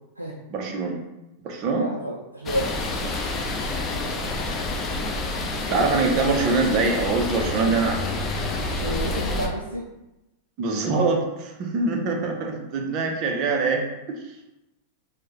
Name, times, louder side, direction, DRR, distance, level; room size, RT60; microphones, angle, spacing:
voice 1, 0.5-1.0 1.4-1.8 5.7-8.0 10.6-13.8, right 3 dB, 40° right, 2 dB, 0.7 m, -23 dB
voice 2, 1.7-2.8 8.7-9.9, equal, 85° right, -1 dB, 0.4 m, -30 dB
sound 1, 2.5-9.5, left 2 dB, 25° left, 0.6 m, -28 dB
6.2 x 2.2 x 2.9 m, 0.95 s
figure-of-eight pair, 90°, 0 cm